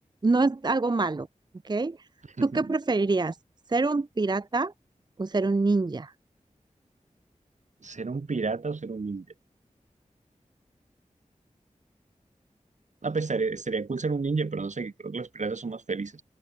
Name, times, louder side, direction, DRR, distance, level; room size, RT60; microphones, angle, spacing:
voice 1, 0.2-1.3 1.6-2.0 2.4-3.4 3.7-4.7 5.2-6.1, right 3 dB, 35° right, 0.6 m, -25 dB
voice 2, 2.4-2.7 7.8-9.3 13.0-16.2, right 4 dB, 65° right, 2.1 m, -31 dB
wide cardioid pair, 60°, 13 cm